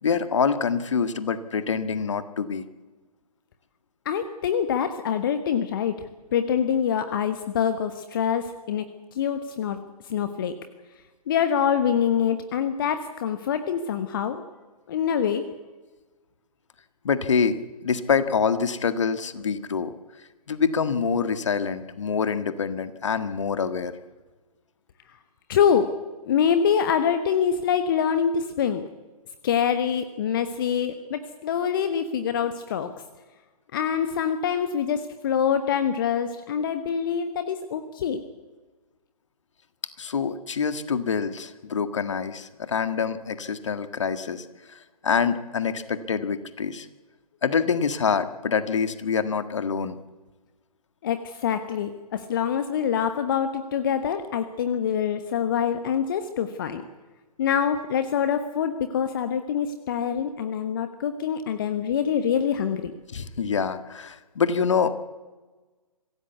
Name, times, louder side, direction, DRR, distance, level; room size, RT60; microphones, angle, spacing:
voice 1, 0.0-2.6 17.0-19.9 20.5-23.9 40.0-46.9 47.4-50.0 63.1-65.0, left 6 dB, 50° left, 11 dB, 1.7 m, -26 dB
voice 2, 4.0-6.0 6.3-8.8 9.1-9.8 10.1-10.5 11.3-14.4 14.9-15.4 25.5-25.9 26.3-28.9 29.4-32.9 33.7-38.2 51.0-56.8 57.4-62.9, left 8 dB, 35° left, 9 dB, 1.2 m, -25 dB
25.0 x 16.0 x 8.2 m, 1.3 s
figure-of-eight pair, 130°, 20 cm